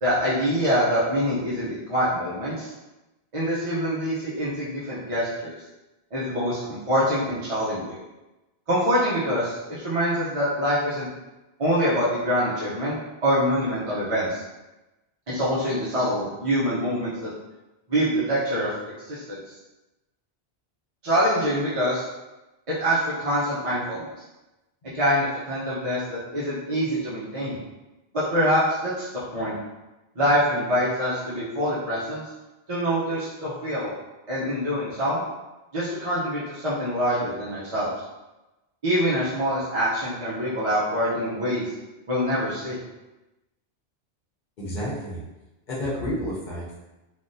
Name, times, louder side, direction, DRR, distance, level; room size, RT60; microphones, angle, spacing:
voice 1, 0.0-2.7 3.3-5.5 6.1-8.0 8.7-9.6 9.8-11.1 11.6-13.0 13.2-14.4 15.3-17.3 17.9-18.7 19.1-19.4 21.0-22.0 22.7-24.1 24.9-27.6 28.1-29.6 30.2-32.2 32.7-33.9 34.3-35.2 35.7-37.9 38.8-41.7 42.1-42.8, equal, 35° right, -9 dB, 0.7 m, -25 dB
voice 2, 44.6-45.2 45.7-46.7, equal, 55° left, -6 dB, 0.9 m, -30 dB
3.5 x 2.3 x 2.6 m, 1.0 s
omnidirectional pair, 1.0 m